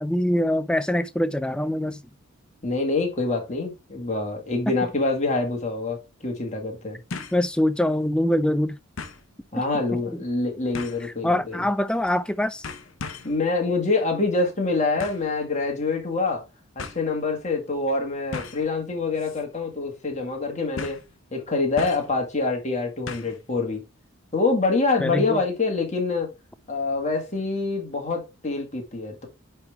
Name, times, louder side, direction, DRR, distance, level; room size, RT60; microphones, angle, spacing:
voice 1, 0.0-2.0 7.3-8.8 11.0-12.7 25.0-25.4, left 1 dB, 5° left, 0.3 m, -24 dB
voice 2, 2.6-7.0 9.5-11.6 13.2-16.4 16.8-21.0 21.3-23.8 24.3-26.3 26.7-29.3, left 3 dB, 35° left, 1.8 m, -26 dB
sound 1, 7.1-7.4 7.9-8.0 9.0-9.2 10.7-11.1 12.0-12.3 12.6-13.4 15.0-15.3 16.3-16.4 16.8-17.0 18.3-18.7 19.2-19.4 19.7-19.8 20.8-21.1 21.8-22.2 23.1-23.4 23.7-23.8, left 4 dB, 70° left, 0.8 m, -37 dB
9.5 x 3.5 x 3.4 m
head